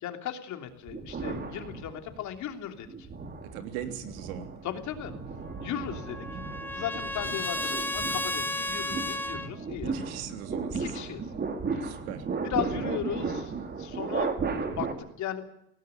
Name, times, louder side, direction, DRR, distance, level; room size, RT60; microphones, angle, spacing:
voice 1, 0.0-3.1 4.6-5.1 5.6-6.3 6.7-10.0 10.7-11.2 11.7-11.9 12.4-13.5 13.8-14.4 14.7-15.5, left 9 dB, 40° left, 6 dB, 3.1 m, -36 dB
sound 1, 0.9-2.3 2.8-14.9, right 4 dB, 20° right, 2.7 m, -35 dB
voice 2, 3.4-4.5 9.9-10.9 11.8-12.2, right 10 dB, 70° right, 8 dB, 3.3 m, -39 dB
Trumpet, 5.6-9.5, left 1 dB, 5° left, 1.2 m, -33 dB
18.0 x 17.5 x 9.2 m, 0.75 s
supercardioid pair, 130°, 44 cm